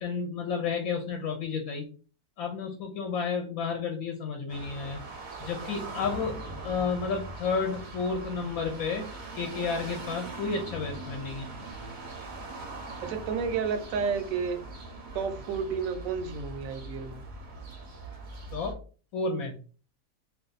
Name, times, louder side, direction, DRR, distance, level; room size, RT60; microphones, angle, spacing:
voice 1, 0.0-1.9 2.4-5.0 5.4-11.5 18.5-18.8 19.1-19.6, left 5 dB, 70° left, 2 dB, 1.0 m, -31 dB
sound 1, 4.5-18.7, right 2 dB, 50° right, 0.6 m, -41 dB
voice 2, 13.0-14.6 15.1-17.2, right 6 dB, 70° right, 8 dB, 0.9 m, -31 dB
2.5 x 2.3 x 3.9 m, 0.38 s
omnidirectional pair, 1.6 m